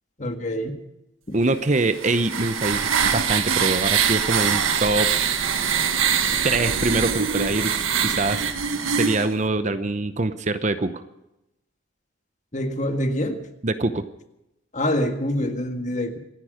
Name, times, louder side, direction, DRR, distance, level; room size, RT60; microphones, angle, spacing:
voice 1, 0.2-0.7 12.5-13.4 14.7-16.2, left 1 dB, 35° left, 1.8 m, -25 dB
voice 2, 1.3-5.1 6.4-8.4 8.9-11.0 13.6-14.0, right 2 dB, 35° right, 0.8 m, -24 dB
sound 1, 1.7-9.3, right 7 dB, 90° right, 1.6 m, -23 dB
26.0 x 11.0 x 5.1 m
head